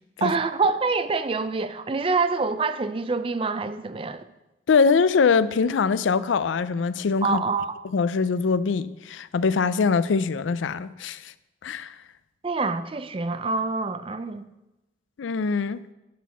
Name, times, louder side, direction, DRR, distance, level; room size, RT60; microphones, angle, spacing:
voice 1, 0.2-4.3 7.2-7.8 12.4-14.4, right 4 dB, 30° right, 11 dB, 0.4 m, -26 dB
voice 2, 4.7-7.4 7.9-11.3 11.6-12.0 15.2-15.8, left 5 dB, 90° left, 15 dB, 0.4 m, -23 dB
9.4 x 6.0 x 5.7 m, 0.99 s
head